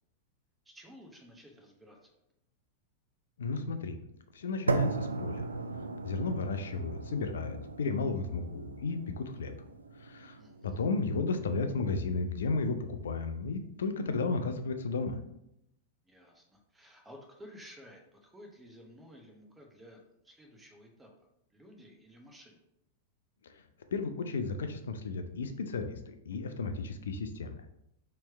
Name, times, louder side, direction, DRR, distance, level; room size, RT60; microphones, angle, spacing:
voice 1, 0.6-2.1 10.4-10.8 16.0-21.1 21.5-22.6, equal, 10° right, 1 dB, 0.8 m, -54 dB
voice 2, 3.4-4.0 4.3-5.4 6.0-9.5 10.0-15.2 23.4-23.6 23.9-27.5, left 3 dB, 70° left, 8 dB, 0.4 m, -33 dB
sound 1, 4.7-12.7, right 3 dB, 85° right, 0.3 m, -37 dB
4.3 x 3.2 x 3.4 m, 0.80 s
figure-of-eight pair, 95°, 0 cm